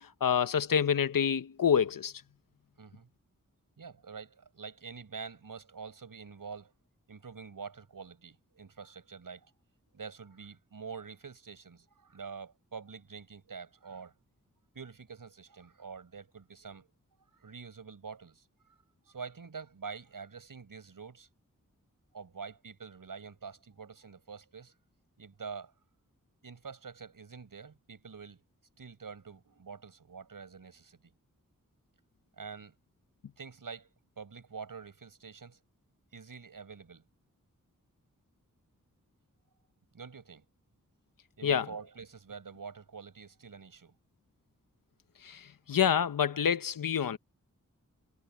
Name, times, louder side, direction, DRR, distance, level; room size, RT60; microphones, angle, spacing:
voice 1, 0.0-2.1 41.4-41.7 45.2-47.2, left 8 dB, 85° left, 0.9 m, -27 dB
voice 2, 2.8-3.1 3.8-6.7 7.1-9.5 9.9-14.1 14.7-16.9 17.3-18.7 19.1-21.3 22.1-24.7 25.2-25.7 26.4-28.4 28.8-31.1 32.4-32.8 33.4-33.9 34.2-35.6 36.1-37.0 39.9-40.4 41.4-44.0 46.8-46.9, right 5 dB, 85° right, 7.4 m, -46 dB
wide cardioid pair, 70°, 33 cm